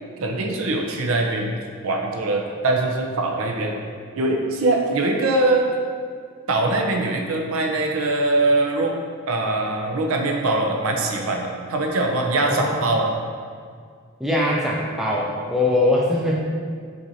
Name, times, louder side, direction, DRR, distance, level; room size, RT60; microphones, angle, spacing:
voice 1, 0.2-1.6 1.8-3.8 4.2-5.7 6.5-9.0 9.3-13.1, right 2 dB, 75° right, 2 dB, 0.5 m, -22 dB
voice 2, 14.2-16.3, left 1 dB, ahead, -5 dB, 0.4 m, -21 dB
5.9 x 2.6 x 2.7 m, 2.1 s
head